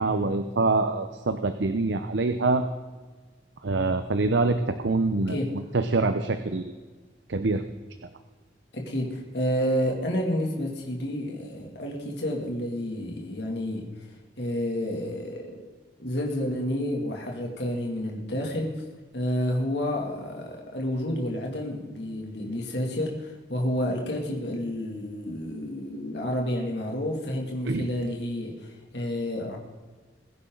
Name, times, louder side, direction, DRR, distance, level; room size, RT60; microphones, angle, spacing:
voice 1, 0.0-2.7 3.6-5.4 5.7-6.7 7.3-7.6 27.7-27.9, right 3 dB, 80° right, 9 dB, 0.7 m, -25 dB
voice 2, 8.7-14.1 14.4-15.7 16.0-18.8 19.1-29.6, equal, 70° left, 0 dB, 2.6 m, -30 dB
22.5 x 10.0 x 3.9 m, 1.4 s
head